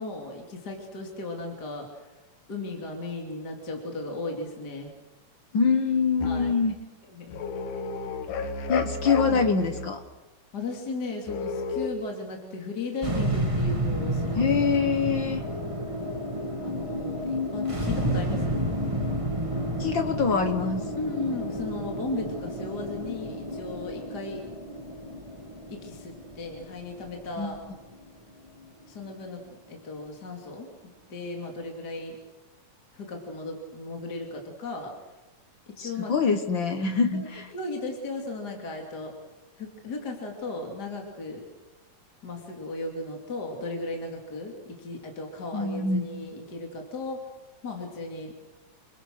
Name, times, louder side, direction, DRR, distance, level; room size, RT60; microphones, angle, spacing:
voice 1, 0.0-2.1 2.5-4.9 6.2-6.5 7.1-7.4 10.5-14.5 16.6-18.7 21.0-24.4 25.7-27.6 28.9-32.2 32.9-34.9 35.7-36.1 37.1-37.3 37.5-39.1 39.6-41.5 42.2-47.3 47.6-48.3, left 3 dB, 30° left, 1 dB, 3.0 m, -36 dB
voice 2, 5.5-6.7 8.7-10.0 14.4-15.4 19.8-20.8 27.4-27.5 35.8-37.5 45.5-46.1, left 5 dB, 55° left, 6 dB, 1.4 m, -24 dB
sound 1, 6.2-6.6 7.3-9.9 11.3-11.9, left 4 dB, 75° left, 3.0 m, -32 dB
sound 2, 13.0-29.4, equal, 20° right, 0.8 m, -31 dB
28.0 x 22.5 x 6.4 m, 1.1 s
omnidirectional pair, 3.7 m